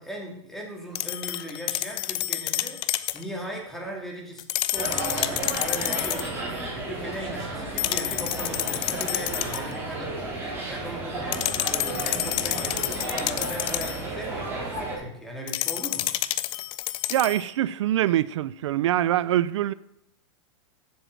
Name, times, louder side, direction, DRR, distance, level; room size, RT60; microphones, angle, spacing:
voice 1, 0.0-2.8 3.1-16.1, right 1 dB, ahead, 2.2 m, -38 dB
sound 1, 0.9-3.2 4.4-6.3 7.8-9.7 11.3-14.0 15.5-17.4, left 15 dB, 35° left, 0.5 m, -29 dB
sound 2, 4.7-14.9, right 2 dB, 15° right, 3.6 m, -33 dB
voice 2, 17.1-19.7, right 12 dB, 80° right, 0.4 m, -24 dB
7.9 x 7.6 x 6.4 m
supercardioid pair, 150°, 15 cm